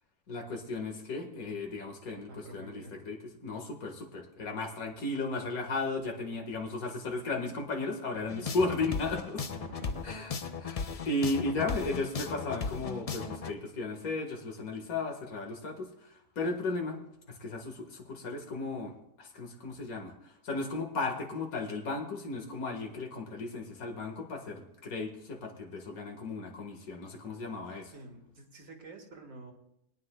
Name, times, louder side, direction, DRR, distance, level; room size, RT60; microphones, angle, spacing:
voice 1, 0.3-9.5 10.0-10.3 10.6-17.0 17.3-27.9, left 3 dB, 85° left, 3 dB, 2.0 m, -35 dB
voice 2, 2.3-3.0 9.6-10.3 27.9-29.5, right 2 dB, 65° right, 2 dB, 1.9 m, -49 dB
sound 1, 8.3-13.5, left 5 dB, 60° left, 0.4 m, -36 dB
22.5 x 9.8 x 2.2 m, 0.80 s
omnidirectional pair, 1.5 m